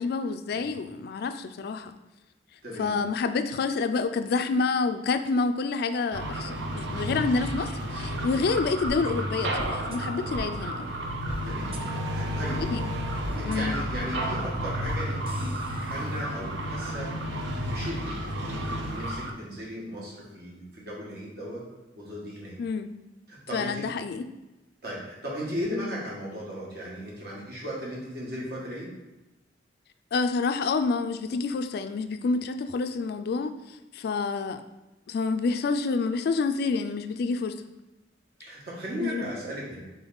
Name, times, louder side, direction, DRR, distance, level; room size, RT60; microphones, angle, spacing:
voice 1, 0.0-1.9 2.8-10.9 12.6-12.8 13.5-13.8 22.6-22.9 23.5-24.3 30.1-34.6 35.1-37.6 39.0-39.3, left 4 dB, 60° left, 9 dB, 0.3 m, -28 dB
voice 2, 0.5-0.8 2.6-2.9 7.1-7.2 11.4-11.8 12.0-12.6 13.3-17.1 17.6-21.6 22.0-22.5 23.3-23.9 24.8-28.9 38.4-39.8, equal, 60° right, -4 dB, 1.6 m, -36 dB
sound 1, 6.1-19.3, equal, 85° right, 0.6 m, -32 dB
sound 2, 8.9-9.0 9.6-10.0 10.3-10.4 11.3-11.4 11.7-11.8 12.6-12.7 13.2-13.6 13.9-14.0 14.8-15.0 15.3-16.2, right 1 dB, 30° right, 0.4 m, -37 dB
3.9 x 3.5 x 3.8 m, 1.0 s
head